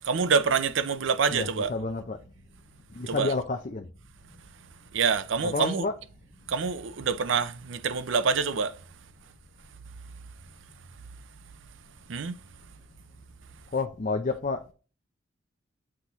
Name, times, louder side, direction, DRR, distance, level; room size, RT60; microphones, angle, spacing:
voice 1, 0.0-1.7 3.1-3.3 4.9-5.8 6.5-8.7 12.1-12.4, right 5 dB, 70° right, 0.5 m, -26 dB
voice 2, 1.3-2.2 2.9-3.9 5.4-5.9 13.7-14.7, left 3 dB, 40° left, 0.6 m, -30 dB
7.6 x 4.1 x 3.0 m
head